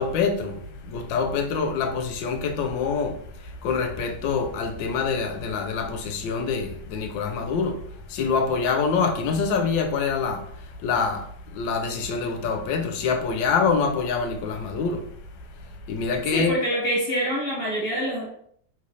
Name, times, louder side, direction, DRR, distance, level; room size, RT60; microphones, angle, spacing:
voice 1, 0.0-3.2 3.4-7.8 8.1-10.4 10.8-11.3 11.5-15.1 15.9-16.5, left 5 dB, 80° left, 1.2 m, -25 dB
voice 2, 16.3-18.3, equal, 55° left, 0.6 m, -25 dB
3.2 x 3.1 x 2.6 m
omnidirectional pair, 2.1 m